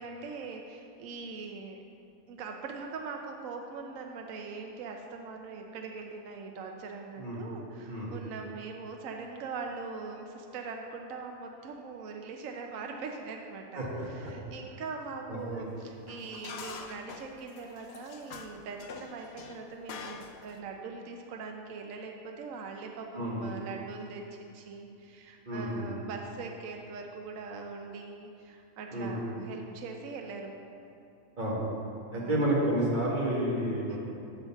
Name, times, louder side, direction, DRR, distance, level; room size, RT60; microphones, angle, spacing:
voice 1, 0.0-1.8 2.3-13.8 14.1-30.5 32.1-32.5 33.9-34.0, right 4 dB, 70° right, 2 dB, 1.0 m, -41 dB
voice 2, 13.8-14.3 15.3-15.6 23.1-23.4 25.5-26.0 28.9-29.2 31.4-31.6 32.1-34.0, right 1 dB, 35° right, -6 dB, 1.8 m, -30 dB
sound 1, 15.4-15.5 16.1-20.6, left 5 dB, 65° left, 0.6 m, -45 dB
9.3 x 3.9 x 7.0 m, 2.8 s
omnidirectional pair, 1.5 m